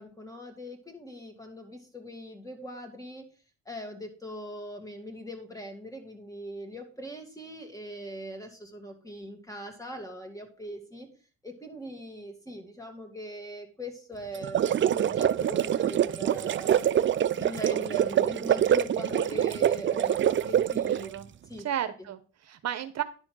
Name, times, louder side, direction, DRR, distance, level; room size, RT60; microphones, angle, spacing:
voice 1, 0.0-3.2 3.7-11.1 11.4-16.8 17.4-21.1 21.5-21.6, equal, 10° left, 4 dB, 2.4 m, -41 dB
sound 1, 14.3-21.1, right 10 dB, 40° right, 0.4 m, -25 dB
voice 2, 20.9-21.3 21.6-23.0, right 10 dB, 60° right, 11 dB, 0.8 m, -33 dB
10.5 x 4.3 x 6.2 m, 0.38 s
cardioid pair, 90°, 30 cm